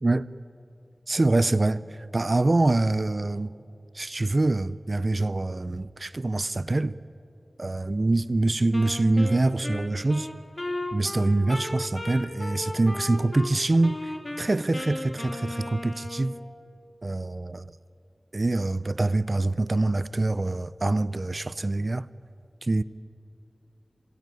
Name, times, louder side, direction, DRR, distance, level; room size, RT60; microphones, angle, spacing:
voice 1, 1.1-3.5 3.9-7.0 7.6-10.3 10.9-16.4 17.0-17.8 18.3-22.1 22.6-22.8, right 2 dB, 45° right, 0.5 m, -25 dB
Wind instrument woodwind instrument, 8.7-13.5 13.8-16.4, left 1 dB, 35° left, 3.0 m, -35 dB
27.0 x 19.0 x 9.2 m
wide cardioid pair, 60°, 0 cm